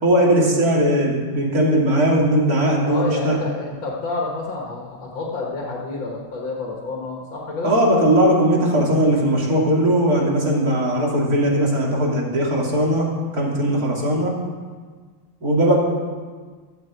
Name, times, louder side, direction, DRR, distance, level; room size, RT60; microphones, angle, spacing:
voice 1, 0.0-3.4 7.6-14.4 15.4-15.8, right 1 dB, 45° right, -2 dB, 3.1 m, -19 dB
voice 2, 2.9-7.8, left 3 dB, 65° left, -2 dB, 2.4 m, -29 dB
13.0 x 7.7 x 8.2 m, 1.5 s
omnidirectional pair, 2.3 m